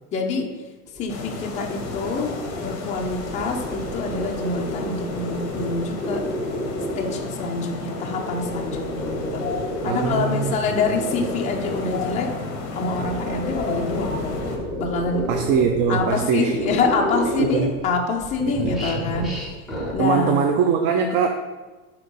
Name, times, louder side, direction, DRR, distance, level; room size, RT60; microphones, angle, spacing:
voice 1, 0.1-0.7 1.0-6.3 7.0-12.4 12.7-14.3 14.8-15.4 15.9-19.4 19.9-20.4, left 4 dB, 15° left, 1 dB, 0.5 m, -26 dB
sound 1, 0.9-7.4 7.9-12.2 12.8-17.9 18.2-19.9, equal, ahead, 1.0 m, -31 dB
sound 2, 1.1-14.6, left 4 dB, 40° left, 1.2 m, -33 dB
voice 2, 9.8-10.8 15.3-16.6 17.4-17.7 18.6-18.8 20.0-21.3, right 6 dB, 35° right, 4 dB, 0.4 m, -22 dB
7.3 x 3.0 x 5.3 m, 1.2 s
supercardioid pair, 145°, 42 cm